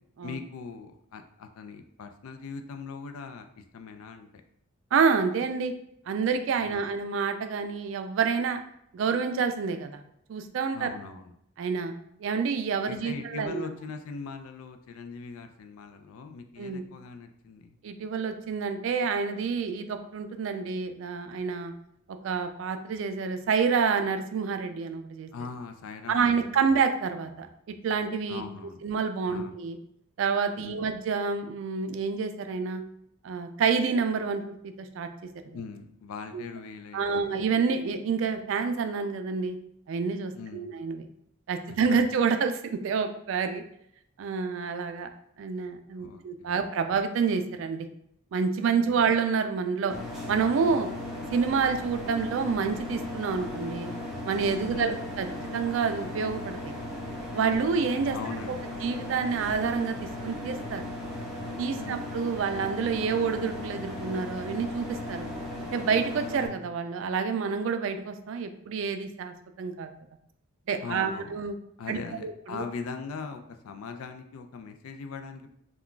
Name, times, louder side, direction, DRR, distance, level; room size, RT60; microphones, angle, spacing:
voice 1, 0.2-4.3 6.6-6.9 10.7-11.3 12.9-17.8 25.3-26.6 28.3-28.8 29.3-29.5 30.6-30.9 35.5-37.3 40.3-40.7 41.9-42.0 46.0-46.6 48.8-49.1 54.6-55.1 58.1-58.7 61.7-62.1 70.8-71.4 71.8-75.5, left 5 dB, 90° left, 7 dB, 0.4 m, -40 dB
voice 2, 4.9-5.7 6.1-8.6 8.9-10.0 10.3-10.9 11.6-11.9 12.2-13.6 16.6-16.8 17.8-21.7 22.2-25.3 26.1-28.4 28.8-29.8 30.2-32.8 33.2-35.1 35.4-35.6 36.3-36.4 36.9-39.6 39.9-41.1 41.5-43.6 44.2-45.1 45.4-47.9 48.3-49.9 50.3-50.9 51.3-53.9 54.2-55.3 55.5-56.7 57.3-58.2 58.8-60.9 61.6-65.3 65.7-69.9 70.7-71.6 71.9-72.7, right 5 dB, 65° right, 8 dB, 0.3 m, -28 dB
sound 1, 49.9-66.5, left 1 dB, ahead, 0.5 m, -37 dB
2.3 x 2.2 x 3.7 m, 0.74 s
head